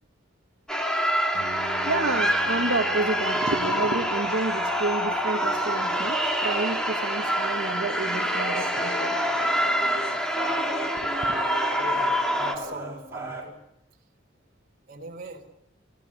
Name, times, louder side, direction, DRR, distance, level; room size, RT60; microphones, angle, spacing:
sound 1, 0.7-12.5, equal, 5° left, 2.4 m, -26 dB
sound 2, 1.3-8.3, right 3 dB, 90° left, 6.6 m, -48 dB
voice 1, 1.8-9.2 11.0-11.5, right 2 dB, 70° right, 2 dB, 1.5 m, -30 dB
sound 3, 5.4-13.4, right 2 dB, 15° right, 4.8 m, -36 dB
voice 2, 11.8-13.6 14.9-15.4, right 2 dB, 45° right, 3 dB, 3.8 m, -40 dB
28.5 x 16.5 x 8.5 m, 0.84 s
head